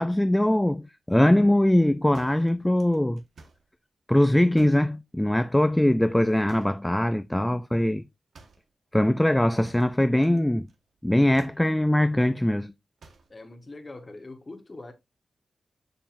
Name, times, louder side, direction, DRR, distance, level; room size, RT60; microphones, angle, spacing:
voice 1, 0.0-3.2 4.1-8.0 8.9-10.7 11.0-12.7, left 1 dB, 5° left, 0.3 m, -22 dB
sound 1, 2.1-3.7 4.5-4.9 6.5-6.9 8.3-8.7 9.6-10.4 10.7-11.0 11.3-11.7 13.0-13.4, right 3 dB, 75° right, 1.4 m, -53 dB
voice 2, 13.3-14.9, left 2 dB, 25° left, 1.2 m, -42 dB
7.2 x 6.6 x 2.6 m
wide cardioid pair, 145°, 0 cm